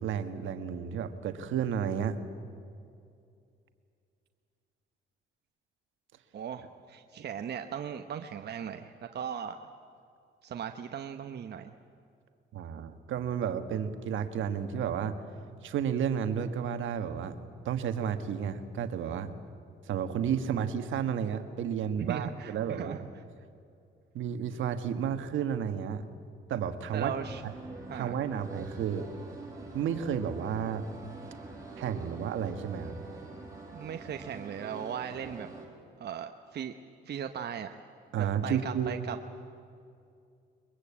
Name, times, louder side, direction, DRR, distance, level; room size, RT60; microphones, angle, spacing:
voice 1, 0.0-2.2 12.5-15.2 15.6-17.4 17.6-19.3 19.9-23.0 24.1-26.0 26.5-27.1 27.4-27.5 27.9-29.1 29.7-30.8 31.8-32.9 38.1-39.0, right 8 dB, 75° right, 9 dB, 1.6 m, -32 dB
voice 2, 6.3-9.6 10.4-11.7 22.1-23.0 26.9-27.4 27.9-28.2 33.7-35.5 36.0-36.8 37.1-37.7 38.2-39.2, right 8 dB, 55° right, 6 dB, 1.0 m, -38 dB
sound 1, 26.9-35.7, right 3 dB, 15° right, 7.6 m, -45 dB
22.5 x 22.0 x 8.6 m, 2.4 s
cardioid pair, 90°, 20 cm